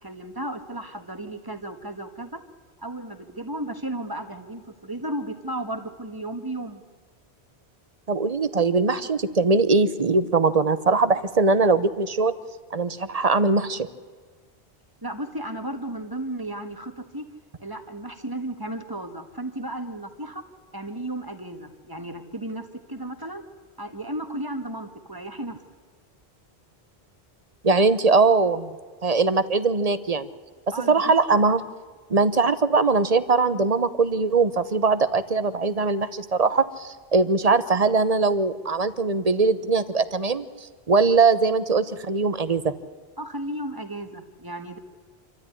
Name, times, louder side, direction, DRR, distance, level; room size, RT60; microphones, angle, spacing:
voice 1, 0.0-2.4 2.8-6.8 15.0-17.3 17.6-20.4 20.7-23.4 23.8-25.6 30.7-31.1 43.2-44.8, right 1 dB, 20° right, 6 dB, 1.6 m, -34 dB
voice 2, 8.1-12.3 12.7-13.9 27.6-28.7 29.0-30.3 30.9-31.6 32.1-40.5 40.9-42.7, right 4 dB, 35° right, 13 dB, 1.0 m, -21 dB
26.5 x 13.5 x 9.9 m, 1.5 s
omnidirectional pair, 1.1 m